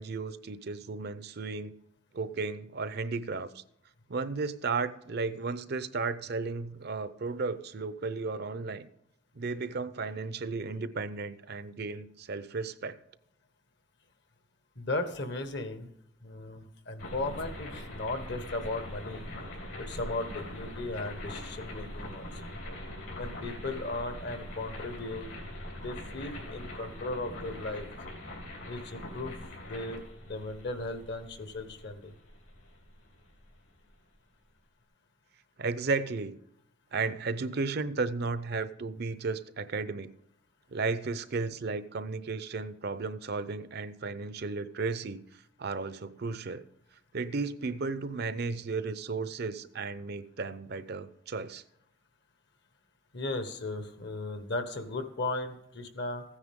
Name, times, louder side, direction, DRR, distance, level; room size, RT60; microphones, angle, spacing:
voice 1, 0.0-1.8 2.1-3.6 4.1-8.9 9.4-13.0 35.6-36.4 36.9-40.1 40.7-45.2 45.6-46.6 47.1-51.6, right 4 dB, 55° right, 13 dB, 0.6 m, -34 dB
voice 2, 14.8-15.9 16.2-19.3 19.8-22.4 23.2-25.3 25.8-27.9 28.7-29.3 29.6-32.1 53.1-56.2, left 2 dB, 55° left, 9 dB, 1.3 m, -36 dB
sound 1, 17.0-33.9, left 1 dB, 75° left, 3.5 m, -42 dB
15.0 x 9.8 x 3.6 m, 0.77 s
head